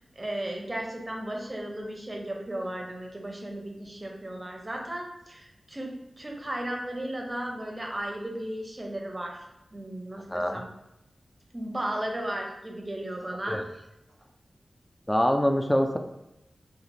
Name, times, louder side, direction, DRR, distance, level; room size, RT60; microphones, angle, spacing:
voice 1, 0.2-9.4 9.7-10.7 11.5-13.6, right 1 dB, 30° right, 1 dB, 0.6 m, -35 dB
voice 2, 10.3-10.6 13.5-13.6 15.1-16.0, equal, 10° left, 5 dB, 0.3 m, -24 dB
3.0 x 2.4 x 2.6 m, 0.87 s
wide cardioid pair, 65°, 0 cm